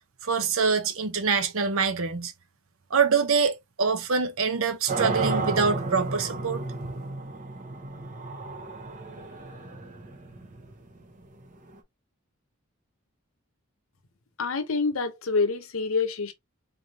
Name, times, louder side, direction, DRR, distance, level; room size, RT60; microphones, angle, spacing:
voice 1, 0.2-2.3 2.9-6.6, right 5 dB, 65° right, 0.8 m, -25 dB
sound 1, 4.9-11.8, right 3 dB, 35° right, 0.9 m, -33 dB
voice 2, 14.4-16.3, left 4 dB, 65° left, 0.8 m, -26 dB
3.9 x 3.3 x 2.8 m
head